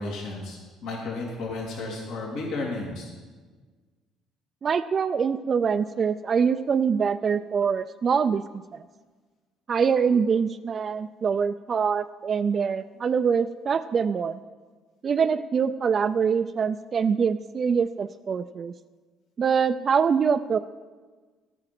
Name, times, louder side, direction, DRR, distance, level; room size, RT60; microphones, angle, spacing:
voice 1, 0.0-3.1, left 2 dB, 75° left, -2 dB, 2.7 m, -33 dB
voice 2, 4.6-8.4 9.7-14.4 15.0-18.7 19.4-20.6, right 6 dB, 40° right, 9 dB, 0.4 m, -24 dB
12.5 x 8.9 x 6.0 m, 1.4 s
cardioid pair, 105°, 0 cm